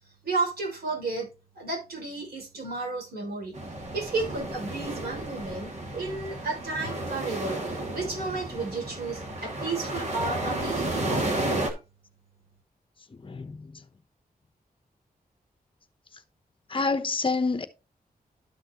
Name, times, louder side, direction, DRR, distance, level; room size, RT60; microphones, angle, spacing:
voice 1, 0.2-1.3 1.5-3.6 3.9-11.3 11.6-11.7, right 3 dB, 90° right, 6.2 m, -32 dB
sound 1, 3.5-11.7, right 1 dB, 45° right, 2.4 m, -32 dB
voice 2, 13.2-13.8 16.7-17.7, left 3 dB, 35° left, 1.0 m, -28 dB
12.5 x 5.9 x 3.0 m
wide cardioid pair, 160°, 16 cm